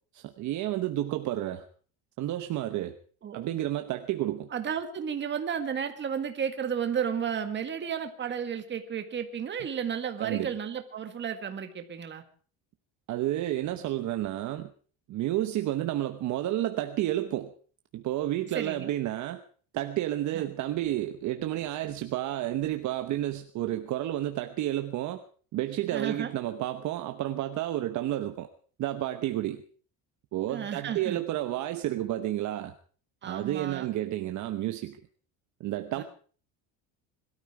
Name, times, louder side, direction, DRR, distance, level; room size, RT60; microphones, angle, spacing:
voice 1, 0.1-1.6 2.2-3.0 3.3-4.5 10.2-10.5 13.1-14.7 15.1-17.5 17.9-19.4 19.7-25.2 25.5-28.5 28.8-29.6 30.3-32.7 33.2-35.0 35.6-36.0, right 14 dB, 45° right, 8 dB, 1.0 m, -31 dB
voice 2, 4.5-12.2 18.5-18.9 20.3-20.5 25.9-26.3 30.5-31.2 33.2-33.9 36.0-36.1, right 8 dB, 30° right, 7 dB, 1.8 m, -33 dB
21.5 x 13.0 x 4.9 m, 0.43 s
cardioid pair, 160°, 39 cm